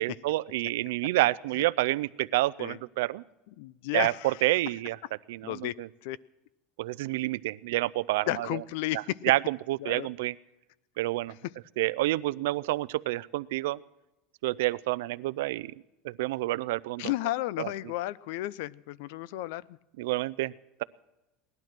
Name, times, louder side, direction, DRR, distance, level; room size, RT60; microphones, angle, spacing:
voice 1, 0.0-3.2 3.9-5.0 5.3-5.9 6.8-8.6 9.2-10.3 11.0-11.3 11.8-13.8 14.4-15.7 16.0-17.1 17.6-17.7 20.0-20.5, right 18 dB, 80° right, 19 dB, 0.5 m, -28 dB
voice 2, 3.6-4.6 5.4-5.7 6.0-6.2 8.3-9.2 9.8-10.1 17.0-19.8, left 15 dB, 70° left, 21 dB, 0.5 m, -33 dB
18.5 x 12.0 x 6.0 m, 0.96 s
supercardioid pair, 155°, 0 cm